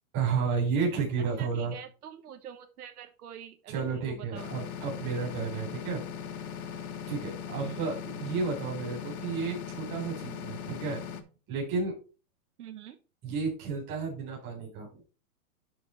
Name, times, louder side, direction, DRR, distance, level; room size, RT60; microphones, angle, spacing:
voice 1, 0.1-1.8 3.7-6.0 6.6-6.8 7.1-11.0 11.5-12.0 13.2-15.0, right 5 dB, 25° right, -2 dB, 4.0 m, -32 dB
voice 2, 1.4-4.7 7.5-7.8 12.6-13.0, right 9 dB, 85° right, 8 dB, 1.3 m, -46 dB
sound 1, 4.4-11.2, left 7 dB, 85° left, 1.6 m, -39 dB
11.0 x 4.4 x 4.4 m, 0.33 s
hypercardioid pair, 165°, 44 cm